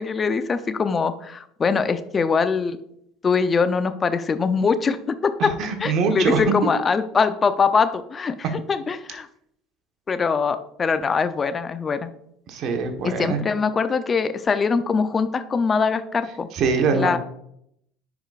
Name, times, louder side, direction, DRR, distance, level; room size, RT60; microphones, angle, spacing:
voice 1, 0.0-2.8 3.2-5.5 5.8-9.3 10.1-12.1 13.0-16.5 16.9-17.2, left 5 dB, 30° left, 11 dB, 0.6 m, -22 dB
voice 2, 5.4-6.4 12.5-13.4 16.5-17.2, right 5 dB, 55° right, 4 dB, 1.3 m, -23 dB
10.0 x 5.0 x 2.5 m, 0.74 s
hypercardioid pair, 75°, 0 cm